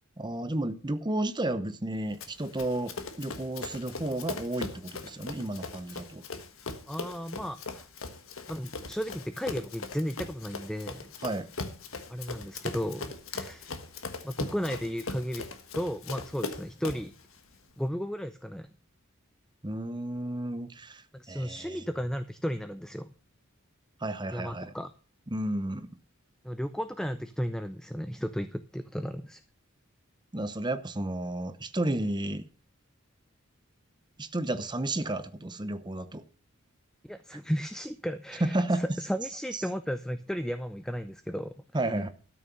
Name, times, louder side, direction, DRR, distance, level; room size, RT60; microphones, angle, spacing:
voice 1, 0.2-6.2 11.2-11.5 19.6-21.0 21.3-21.8 24.0-24.7 25.3-25.9 30.3-32.5 34.2-36.2 38.4-38.9 39.5-39.6 41.7-42.1, right 1 dB, 20° right, 0.8 m, -32 dB
Run, 2.2-17.1, left 3 dB, 75° left, 1.5 m, -40 dB
voice 2, 6.9-7.9 8.5-11.1 12.1-13.7 14.2-15.5 15.7-17.1 17.8-18.7 21.1-23.1 24.3-24.9 26.4-29.4 37.0-41.9, equal, 5° left, 0.5 m, -34 dB
13.0 x 6.4 x 6.8 m
head